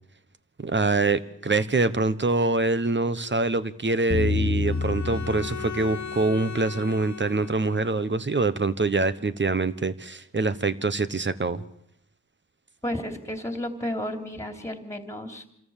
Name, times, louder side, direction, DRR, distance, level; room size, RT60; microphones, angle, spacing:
voice 1, 0.6-11.6, right 3 dB, 35° right, 13 dB, 1.1 m, -25 dB
sound 1, 4.1-6.3, left 4 dB, 30° left, 1.8 m, -28 dB
Bowed string instrument, 4.7-8.2, left 7 dB, 60° left, 1.4 m, -38 dB
voice 2, 12.8-15.5, left 1 dB, 10° left, 7 dB, 3.2 m, -32 dB
26.5 x 14.0 x 7.4 m, 0.79 s
cardioid pair, 60°, 32 cm